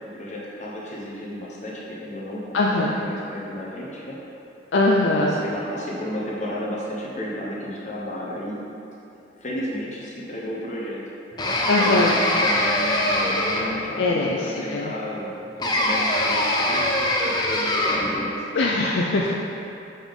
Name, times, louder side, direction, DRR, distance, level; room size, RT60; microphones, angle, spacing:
voice 1, 0.0-4.2 4.9-8.6 9.4-11.0 11.6-12.0 12.4-18.4 19.1-19.2, left 1 dB, 40° left, -5 dB, 1.0 m, -33 dB
voice 2, 2.5-2.9 4.7-5.4 11.7-12.2 14.0-14.9 18.5-19.3, left 2 dB, 85° left, -2 dB, 0.5 m, -21 dB
sound 1, 11.4-13.9 15.6-18.2, left 1 dB, 20° left, 0.6 m, -23 dB
7.1 x 5.4 x 3.7 m, 2.8 s
head